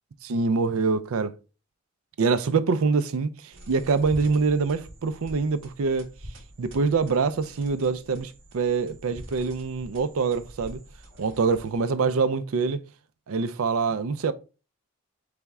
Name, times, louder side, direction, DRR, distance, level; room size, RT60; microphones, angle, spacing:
voice 1, 0.2-1.3 2.2-6.1 6.6-10.8 11.2-12.8 13.3-14.3, right 4 dB, 80° right, 0.5 m, -25 dB
sound 1, 3.5-11.9, equal, 65° right, 1.6 m, -46 dB
4.1 x 3.4 x 3.5 m
head